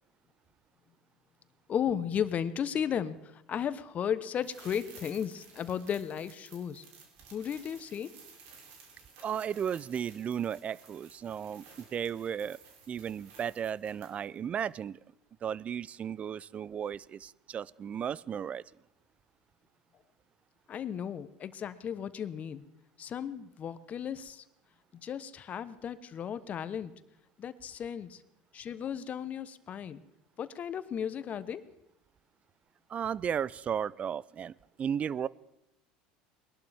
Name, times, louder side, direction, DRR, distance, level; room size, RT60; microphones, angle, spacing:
voice 1, 1.7-6.8 7.3-8.1 20.7-22.6 23.0-24.4 24.9-26.9 27.4-28.2 28.5-30.0 30.4-31.6, left 8 dB, 40° left, 14 dB, 0.9 m, -35 dB
sound 1, 4.4-14.4 14.6-14.7, right 5 dB, 70° right, 3.1 m, -55 dB
voice 2, 9.2-12.6 12.9-15.0 15.4-18.6 32.9-34.5 34.8-35.3, right 8 dB, 35° right, 22 dB, 0.4 m, -34 dB
21.5 x 11.5 x 3.5 m, 0.85 s
hypercardioid pair, 85°, 4 cm